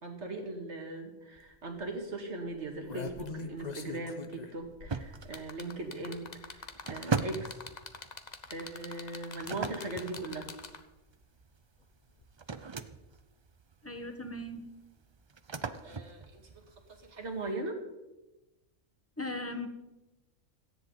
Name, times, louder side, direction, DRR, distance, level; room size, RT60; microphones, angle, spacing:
voice 1, 0.0-7.5 8.5-10.5 15.8-16.6 17.0-17.8, right 2 dB, 60° right, 4 dB, 2.4 m, -39 dB
sound 1, 1.4-1.5 1.8-2.0 2.6-11.0 12.2-12.3, left 4 dB, 35° left, 1.0 m, -43 dB
sound 2, 4.9-17.5, right 4 dB, 40° right, 0.4 m, -40 dB
voice 2, 13.8-14.7 19.2-19.7, left 1 dB, 10° left, 6 dB, 1.3 m, -38 dB
17.5 x 13.5 x 4.0 m, 1.0 s
omnidirectional pair, 1.3 m